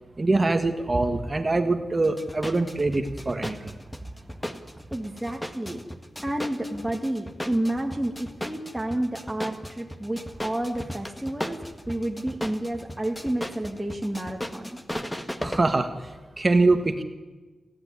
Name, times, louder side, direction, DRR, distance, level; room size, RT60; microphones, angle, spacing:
voice 1, 0.2-3.7 15.4-17.0, right 2 dB, 30° right, 7 dB, 1.6 m, -24 dB
sound 1, 2.0-15.8, equal, 10° left, 1.8 m, -36 dB
voice 2, 4.9-5.8 6.2-14.8, right 1 dB, 5° right, 0 dB, 2.2 m, -30 dB
28.0 x 15.0 x 9.8 m, 1.3 s
wide cardioid pair, 90°, 0 cm